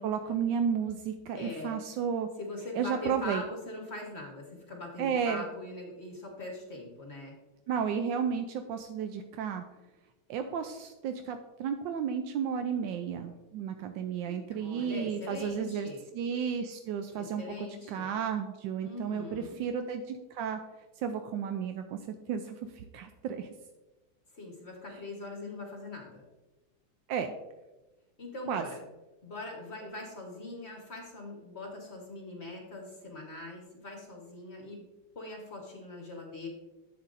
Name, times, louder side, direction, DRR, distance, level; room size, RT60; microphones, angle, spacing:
voice 1, 0.0-2.3 2.7-3.4 5.0-5.4 7.7-9.6 10.3-20.6 21.0-22.0 22.3-23.5 27.1-27.3 28.5-28.7, right 7 dB, 75° right, 7 dB, 1.1 m, -33 dB
voice 2, 1.3-1.8 2.4-7.4 14.3-16.0 17.1-18.1 18.8-19.6 24.3-26.2 28.2-28.8 29.2-34.9 35.1-36.5, left 2 dB, 35° left, 0 dB, 1.2 m, -42 dB
11.0 x 7.3 x 2.5 m, 1.1 s
omnidirectional pair, 2.4 m